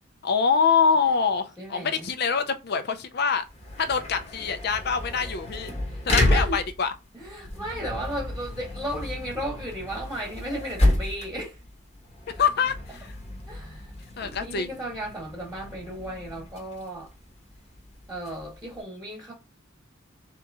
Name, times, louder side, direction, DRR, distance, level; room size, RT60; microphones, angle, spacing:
voice 1, 0.2-3.4 3.8-5.7 6.1-6.9 12.4-13.1 14.2-14.7, left 6 dB, 50° left, 0.5 m, -25 dB
voice 2, 1.6-2.1 5.8-6.6 7.1-11.6 13.5-13.9 14.2-17.1 18.1-19.3, right 1 dB, 5° right, 1.2 m, -34 dB
sound 1, 3.4-18.8, left 1 dB, 30° left, 0.9 m, -31 dB
3.7 x 3.0 x 3.5 m
head